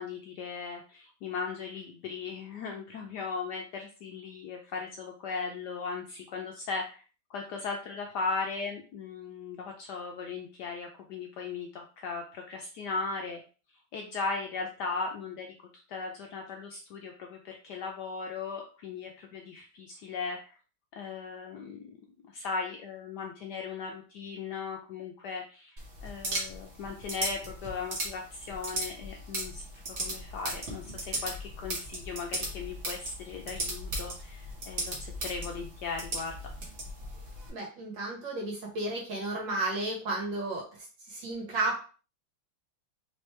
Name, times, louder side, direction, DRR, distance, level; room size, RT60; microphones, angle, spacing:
voice 1, 0.0-7.0 7.3-13.4 13.9-15.5 15.9-20.5 21.0-22.0 22.3-25.7 26.0-36.4, left 4 dB, 70° left, 1 dB, 1.0 m, -37 dB
sound 1, 25.8-37.5, right 1 dB, 40° right, 1.3 m, -37 dB
voice 2, 37.5-40.6 41.1-41.9, right 2 dB, 65° right, -2 dB, 2.2 m, -33 dB
4.1 x 3.1 x 3.2 m, 0.36 s
omnidirectional pair, 2.3 m